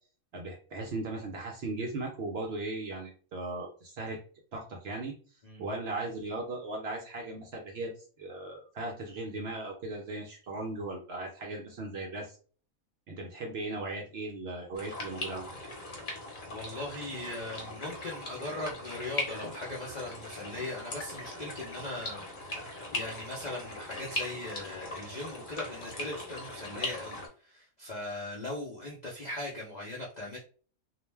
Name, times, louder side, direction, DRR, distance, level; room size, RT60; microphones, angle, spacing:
voice 1, 0.3-4.2 4.5-5.1 5.6-12.4 13.1-15.5, right 2 dB, 65° right, 1 dB, 0.6 m, -37 dB
sound 1, 14.7-27.3, left 2 dB, 45° left, 0.8 m, -40 dB
voice 2, 16.5-30.4, left 2 dB, 60° left, -3 dB, 0.4 m, -39 dB
2.4 x 2.1 x 3.2 m, 0.40 s
omnidirectional pair, 1.5 m